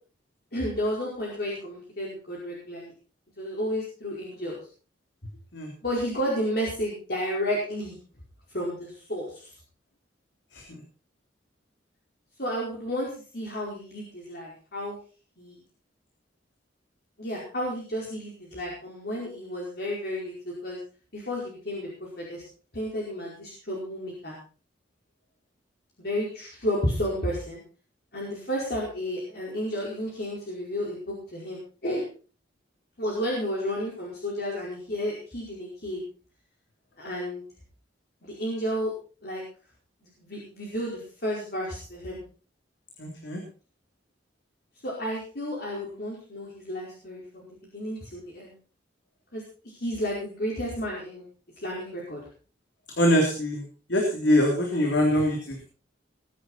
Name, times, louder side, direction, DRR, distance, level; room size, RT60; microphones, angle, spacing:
voice 1, 0.5-2.9 3.4-4.6 5.8-8.0 8.5-9.5 12.4-15.0 15.4-15.6 17.2-20.8 21.1-22.4 22.7-24.4 26.0-27.6 28.1-32.1 33.0-36.0 37.0-37.4 38.2-38.9 39.2-39.4 40.0-42.2 44.8-48.5 49.3-51.3 51.6-52.2, equal, 55° left, -4 dB, 4.9 m, -32 dB
voice 2, 43.0-43.4 53.0-53.6 53.9-55.6, left 1 dB, 75° left, 1 dB, 3.6 m, -23 dB
21.0 x 10.0 x 4.4 m, 0.38 s
head